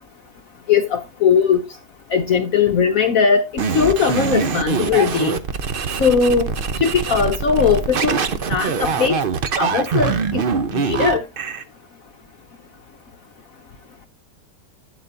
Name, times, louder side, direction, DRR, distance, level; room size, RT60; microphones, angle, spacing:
voice 1, 0.7-1.6 2.1-5.4 6.0-6.5 6.8-8.2 8.5-9.2 9.6-10.4 10.7-11.2, left 6 dB, 60° left, 1.1 m, -19 dB
sound 1, 3.6-11.6, right 5 dB, 50° right, 0.6 m, -23 dB
11.5 x 8.4 x 2.7 m
omnidirectional pair, 1.9 m